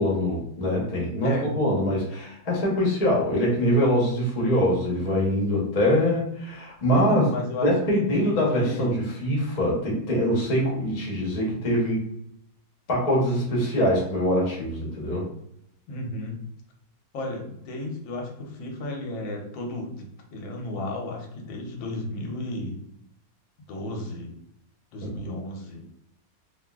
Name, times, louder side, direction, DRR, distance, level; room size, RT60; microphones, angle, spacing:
voice 1, 0.0-7.3 7.6-12.1 12.9-15.3, equal, 30° left, -4 dB, 0.7 m, -23 dB
voice 2, 1.2-1.5 6.9-9.0 15.9-16.4 17.1-22.8 23.7-24.3 24.9-25.8, left 2 dB, 85° left, 1 dB, 1.5 m, -33 dB
3.5 x 2.5 x 2.3 m, 0.73 s
omnidirectional pair, 2.0 m